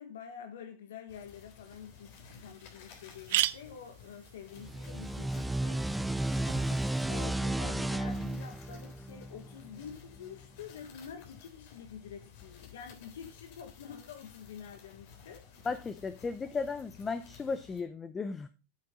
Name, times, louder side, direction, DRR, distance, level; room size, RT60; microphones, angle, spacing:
voice 1, 0.0-5.8 7.1-15.4, left 7 dB, 90° left, 1.5 m, -47 dB
sound 1, 1.1-17.8, left 7 dB, 60° left, 3.5 m, -55 dB
sound 2, 1.7-1.8 2.3-2.4 2.6-2.7 3.0-6.8, right 16 dB, 70° right, 0.5 m, -37 dB
sound 3, 4.6-9.9, right 1 dB, 5° right, 0.4 m, -33 dB
voice 2, 15.6-18.5, left 4 dB, 20° left, 0.7 m, -35 dB
9.0 x 8.8 x 3.8 m
supercardioid pair, 130°, 0 cm